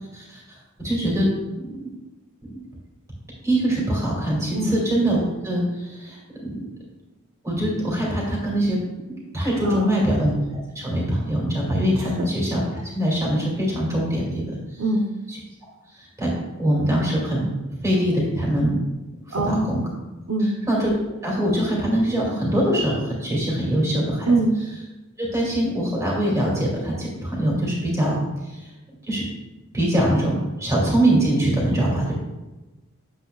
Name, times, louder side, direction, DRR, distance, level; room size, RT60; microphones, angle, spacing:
voice 1, 0.1-1.3 1.6-1.7 3.4-6.6 7.4-8.8 9.1-10.3 10.8-14.5 15.9-16.3 16.6-17.5 17.8-18.8 19.3-19.8 20.7-20.9 21.2-24.3 25.2-28.2 29.1-29.2 29.7-32.1, right 1 dB, 15° right, -4 dB, 2.2 m, -23 dB
voice 2, 9.6-10.1 12.2-12.3 14.8-15.1 19.3-19.8 20.3-20.6 24.3-24.6, right 2 dB, 65° right, 2 dB, 0.6 m, -22 dB
8.5 x 7.6 x 2.3 m, 1.1 s
head